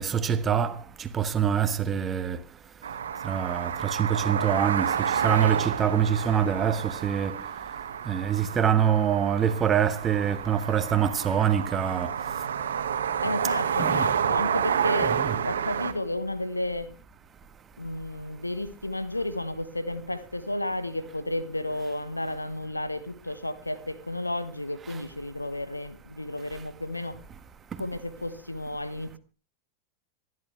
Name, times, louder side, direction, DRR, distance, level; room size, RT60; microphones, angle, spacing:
voice 1, 0.0-2.4 3.2-7.4 8.0-12.1 13.8-14.1 15.0-15.3, right 8 dB, 25° right, 1.4 m, -25 dB
sound 1, 2.8-15.9, right 8 dB, 65° right, 1.5 m, -29 dB
voice 2, 13.2-16.9 17.8-27.2 27.8-29.2, left 1 dB, 85° left, 1.3 m, -32 dB
26.5 x 11.5 x 3.3 m
figure-of-eight pair, 90°, 0 cm